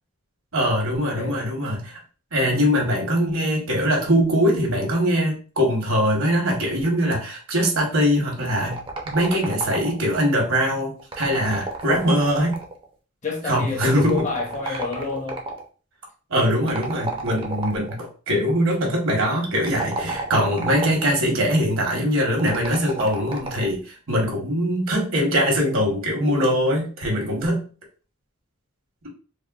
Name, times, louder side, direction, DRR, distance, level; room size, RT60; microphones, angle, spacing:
voice 1, 0.5-2.0 2.3-12.6 13.4-14.2 14.7-14.8 16.3-27.6, equal, 70° right, 1.0 m, -22 dB
sound 1, 8.6-10.2 11.0-12.8 13.8-15.6 16.7-18.0 19.6-21.1 22.4-23.7, right 3 dB, 25° right, 0.5 m, -32 dB
voice 2, 13.2-15.4, left 4 dB, 35° left, 0.7 m, -29 dB
3.4 x 2.1 x 2.3 m
head